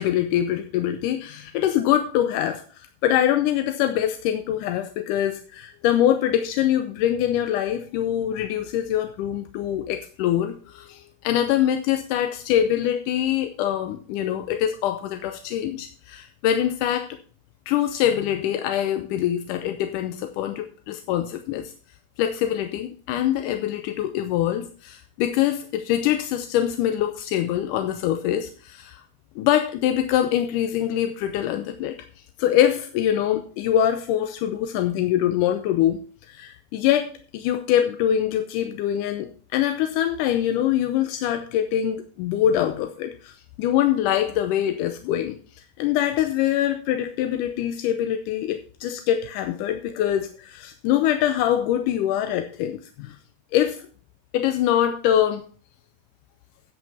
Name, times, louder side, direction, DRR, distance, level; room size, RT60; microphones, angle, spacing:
voice 1, 0.0-17.1 17.7-21.7 22.2-29.0 29.4-32.0 32.4-36.0 36.3-45.4 45.8-53.2 53.5-53.9 54.3-55.5, left 11 dB, 75° left, 7 dB, 2.0 m, -24 dB
11.0 x 6.2 x 5.6 m, 0.42 s
omnidirectional pair, 4.2 m